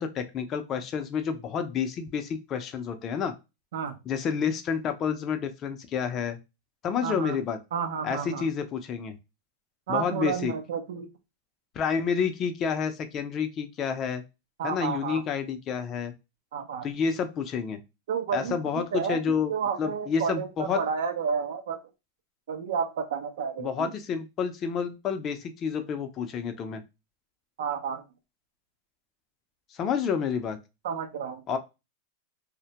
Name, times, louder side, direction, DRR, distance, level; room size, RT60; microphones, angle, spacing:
voice 1, 0.0-3.3 4.1-6.4 6.8-7.6 8.0-9.2 9.9-10.5 11.8-14.2 14.6-16.1 16.8-17.8 18.3-19.5 19.8-20.8 23.6-26.8 29.7-30.6 31.5-31.6, left 6 dB, 35° left, 0.4 m, -29 dB
voice 2, 7.0-7.4 7.7-8.5 9.9-11.1 14.6-15.2 16.5-16.9 18.1-19.2 19.5-21.8 22.5-23.9 27.6-28.0 30.8-31.4, right 6 dB, 80° right, 0.5 m, -31 dB
2.1 x 2.1 x 2.7 m
supercardioid pair, 130°, 0 cm